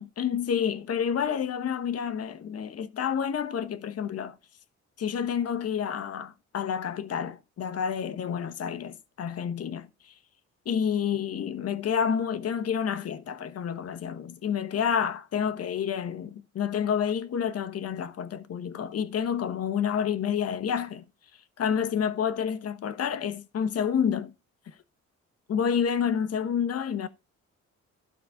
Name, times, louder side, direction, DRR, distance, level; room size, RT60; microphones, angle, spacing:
voice 1, 0.0-4.3 5.0-9.9 10.6-21.0 21.6-24.3 25.5-27.1, left 7 dB, 55° left, 1.1 m, -29 dB
12.0 x 4.2 x 5.7 m
cardioid pair, 90°, 30 cm